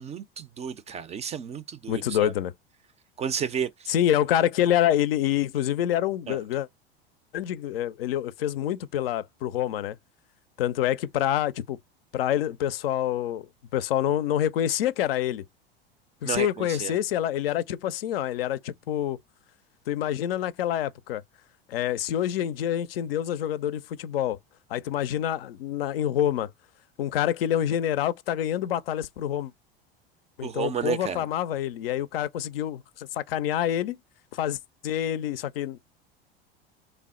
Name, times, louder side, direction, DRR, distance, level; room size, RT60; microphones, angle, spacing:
voice 1, 0.0-2.3 3.2-3.9 6.3-6.4 16.2-17.0 30.4-31.3, right 8 dB, 20° right, 0.3 m, -32 dB
voice 2, 1.9-2.5 3.9-6.7 7.3-10.0 10.6-11.8 12.1-15.4 16.2-19.2 19.9-21.2 21.7-24.4 24.7-26.5 27.0-29.5 30.4-34.0 34.3-34.6 34.8-35.8, left 11 dB, 75° left, 0.5 m, -27 dB
3.3 x 2.1 x 3.5 m
hypercardioid pair, 80°, 30 cm